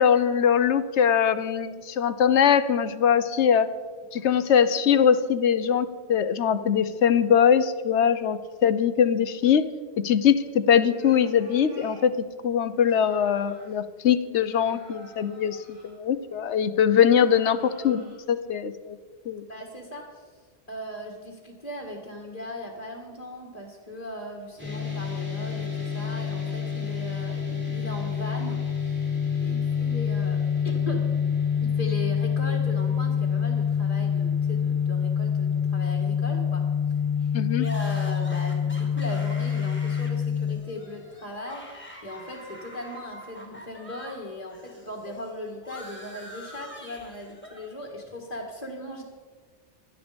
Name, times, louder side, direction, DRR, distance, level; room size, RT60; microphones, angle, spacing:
voice 1, 0.0-3.7 4.1-9.7 10.0-12.1 12.4-15.6 15.8-19.0 19.3-19.4 37.3-37.7, left 8 dB, 80° left, 13 dB, 1.1 m, -22 dB
sound 1, 10.8-12.1 12.7-13.8 14.5-15.9 17.0-18.2, right 1 dB, 65° right, 6.5 m, -51 dB
voice 2, 19.5-20.2 20.7-29.0 29.4-31.0 31.6-36.6 37.2-49.0, left 1 dB, 35° left, 0 dB, 1.9 m, -38 dB
sound 2, 24.6-40.5, left 7 dB, 10° right, 5.0 m, -26 dB
sound 3, 37.6-44.2 44.5-47.7, equal, 10° left, 2.8 m, -45 dB
17.5 x 12.0 x 5.2 m, 1.5 s
omnidirectional pair, 1.2 m